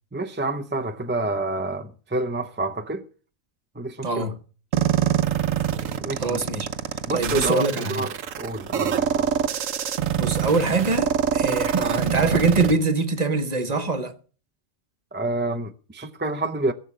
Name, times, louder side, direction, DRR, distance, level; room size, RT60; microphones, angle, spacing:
voice 1, 0.1-3.0 3.7-4.3 6.0-6.4 7.0-9.3 15.1-16.7, right 2 dB, 15° right, 0.4 m, -28 dB
voice 2, 4.0-4.4 6.2-6.7 7.1-8.1 10.2-14.1, right 3 dB, 30° right, 1.2 m, -23 dB
sound 1, 4.7-12.7, right 9 dB, 75° right, 1.2 m, -25 dB
16.5 x 6.7 x 7.4 m
omnidirectional pair, 1.4 m